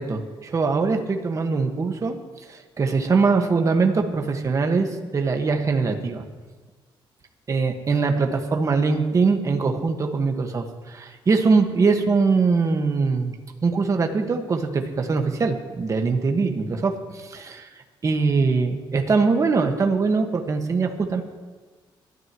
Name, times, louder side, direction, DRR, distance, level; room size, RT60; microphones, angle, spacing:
voice 1, 0.0-2.2 2.5-6.2 7.5-13.4 13.6-17.7 18.0-21.2, right 4 dB, 35° right, 4 dB, 1.6 m, -22 dB
23.0 x 12.5 x 3.1 m, 1.4 s
cardioid pair, 110°, 9 cm